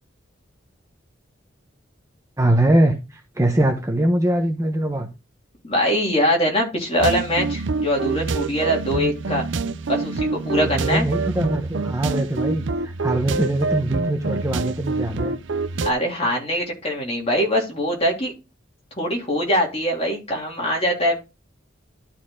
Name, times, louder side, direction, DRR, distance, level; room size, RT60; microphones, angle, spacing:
voice 1, 2.4-5.1 10.6-15.3, right 1 dB, 15° right, 3 dB, 0.9 m, -22 dB
voice 2, 5.6-9.5 9.9-11.1 15.8-18.3 19.0-21.2, equal, 30° left, -1 dB, 3.0 m, -22 dB
sound 1, 7.0-15.9, right 4 dB, 70° right, 0.6 m, -26 dB
12.0 x 4.3 x 3.8 m, 0.27 s
head